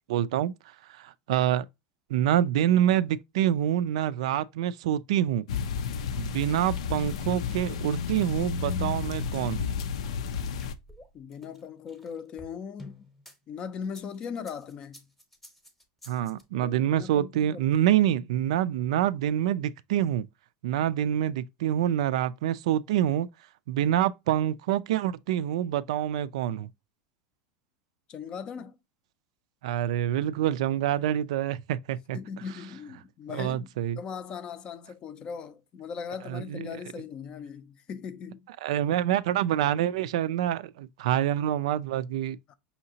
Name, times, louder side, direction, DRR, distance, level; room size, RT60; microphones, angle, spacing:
voice 1, 0.1-0.5 1.0-1.6 2.1-5.5 6.2-9.8 16.1-20.3 20.6-23.3 23.7-26.7 29.6-32.2 33.3-34.0 36.3-36.6 38.6-42.4, right 11 dB, 80° right, 0.3 m, -26 dB
sound 1, 5.5-10.7, left 6 dB, 90° left, 0.5 m, -31 dB
sound 2, 10.0-13.4 13.8-16.4, left 1 dB, 5° left, 0.8 m, -51 dB
voice 2, 11.1-13.1 13.5-15.1 16.5-18.0 28.1-28.8 32.1-33.7 34.0-38.5 42.5-42.6, left 6 dB, 30° left, 0.4 m, -39 dB
5.6 x 2.8 x 2.7 m
supercardioid pair, 155°, 3 cm